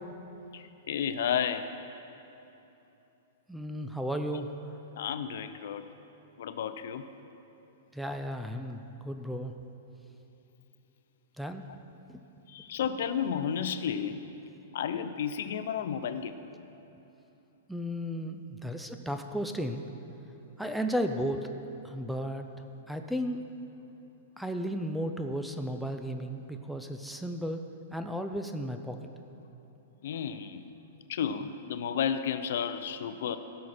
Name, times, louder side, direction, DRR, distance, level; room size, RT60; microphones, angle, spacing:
voice 1, 0.5-1.7 5.0-5.8 6.4-7.0 12.5-14.2 14.7-16.3 30.0-30.6 31.1-33.4, left 8 dB, 65° left, 11 dB, 0.5 m, -32 dB
voice 2, 3.5-4.5 7.9-9.5 11.4-11.7 12.1-12.2 17.7-19.8 20.6-21.5 21.8-22.4 22.9-23.4 24.4-27.7 27.9-29.0, equal, ahead, 6 dB, 0.4 m, -34 dB
16.0 x 6.4 x 4.2 m, 2.9 s
hypercardioid pair, 155°, 0 cm